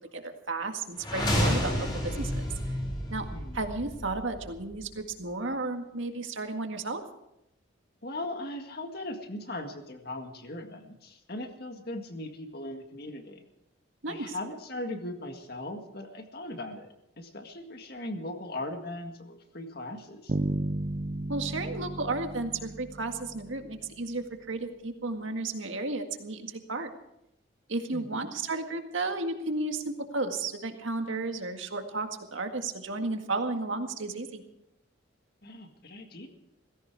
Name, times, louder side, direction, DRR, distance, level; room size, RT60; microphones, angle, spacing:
voice 1, 0.1-2.4 3.1-3.3 3.5-7.0 14.0-14.4 21.3-26.9 27.7-34.4, right 3 dB, 75° right, 5 dB, 1.9 m, -33 dB
sound 1, 1.0-5.0, equal, 20° left, 3.8 m, -31 dB
voice 2, 3.3-3.6 8.0-13.4 14.1-20.4 27.9-28.3 35.4-36.3, left 1 dB, 50° left, 5 dB, 2.0 m, -39 dB
Bass guitar, 20.3-24.1, right 1 dB, 40° right, 0.6 m, -34 dB
17.5 x 16.0 x 4.8 m, 0.84 s
head